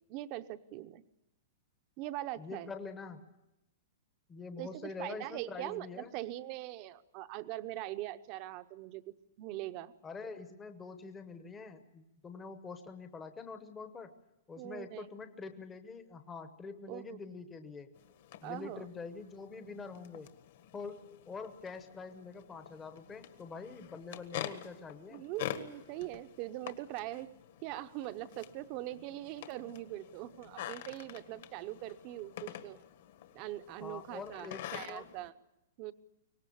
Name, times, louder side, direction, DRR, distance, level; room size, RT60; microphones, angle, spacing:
voice 1, 0.1-1.0 2.0-2.7 4.6-9.9 14.6-15.1 16.9-17.2 18.4-18.9 25.1-27.3 27.6-32.8 33.3-35.3 35.8-35.9, right 15 dB, 25° right, 12 dB, 0.8 m, -42 dB
voice 2, 2.4-3.3 4.3-6.1 10.0-14.1 14.5-17.9 18.4-20.3 20.7-25.2 33.8-35.1, left 4 dB, 10° left, 8 dB, 0.9 m, -45 dB
sound 1, 17.9-35.3, left 11 dB, 50° left, 1.6 m, -47 dB
24.0 x 19.5 x 8.5 m, 0.90 s
supercardioid pair, 180°, 0 cm